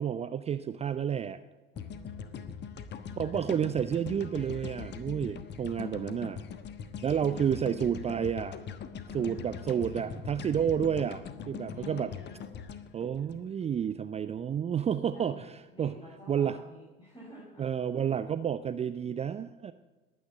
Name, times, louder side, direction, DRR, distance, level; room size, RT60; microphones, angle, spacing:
voice 1, 0.0-1.4 3.1-6.4 7.0-8.5 9.1-12.1 12.9-16.0 16.3-16.6 17.6-19.7, right 8 dB, 20° right, 12 dB, 0.6 m, -30 dB
voice 2, 1.7-2.5 5.8-6.5 7.2-7.8 9.0-10.2 11.7-12.3 15.1-17.7 17.9-18.1, left 1 dB, 15° left, -5 dB, 7.3 m, -50 dB
sound 1, 1.8-14.0, left 7 dB, 35° left, 1.3 m, -42 dB
19.5 x 9.5 x 7.5 m, 1.2 s
figure-of-eight pair, 65°, 29 cm